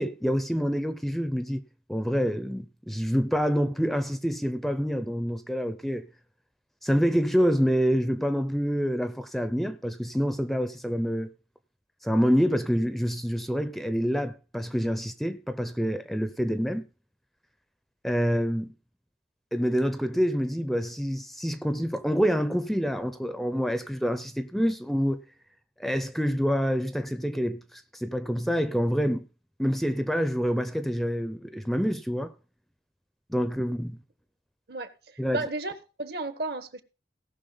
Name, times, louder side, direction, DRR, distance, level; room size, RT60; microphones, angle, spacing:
voice 1, 0.0-6.1 6.8-11.3 12.0-16.9 18.0-18.7 19.5-25.2 25.8-29.3 29.6-32.3 33.3-34.0 35.2-35.4, equal, ahead, 0.5 m, -27 dB
voice 2, 35.3-36.8, right 2 dB, 65° right, 1.3 m, -33 dB
17.5 x 6.1 x 3.9 m
head